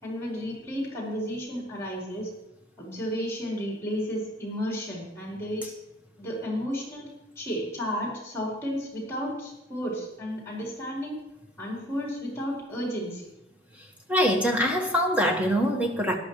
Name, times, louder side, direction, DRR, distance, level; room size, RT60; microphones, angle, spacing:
voice 1, 0.0-2.3 2.8-5.7 6.2-7.1 7.4-11.2 11.6-13.2, equal, 15° left, -3 dB, 4.5 m, -32 dB
voice 2, 13.8-16.2, equal, 10° right, 1 dB, 1.6 m, -24 dB
14.0 x 11.5 x 3.2 m, 0.95 s
head